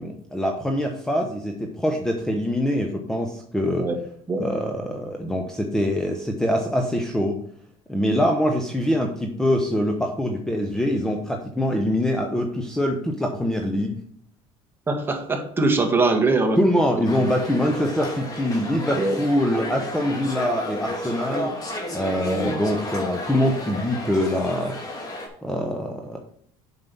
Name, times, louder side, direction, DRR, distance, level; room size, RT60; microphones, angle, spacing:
voice 1, 0.0-3.9 4.4-7.4 7.9-14.0 16.6-21.5 21.9-24.8 25.4-26.2, equal, 5° left, 2 dB, 0.9 m, -24 dB
voice 2, 14.9-16.6 19.0-19.2 22.2-22.6, right 3 dB, 15° right, 3 dB, 1.5 m, -22 dB
sound 1, 17.0-25.3, left 1 dB, 25° left, 2.4 m, -32 dB
7.4 x 5.8 x 5.4 m, 0.63 s
cardioid pair, 120°, 13 cm